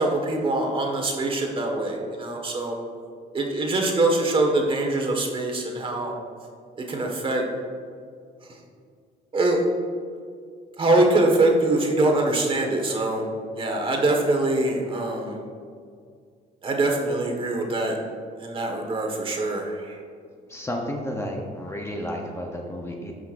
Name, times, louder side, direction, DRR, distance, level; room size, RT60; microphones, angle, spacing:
voice 1, 0.0-2.8 3.3-6.1 6.8-7.4 9.3-9.6 10.8-13.2 13.6-15.4 16.6-18.0 18.4-20.0, right 2 dB, 30° right, 2 dB, 1.5 m, -23 dB
voice 2, 20.5-23.1, equal, 15° left, 1 dB, 0.8 m, -32 dB
13.0 x 5.7 x 2.6 m, 2.1 s
cardioid pair, 110°, 17 cm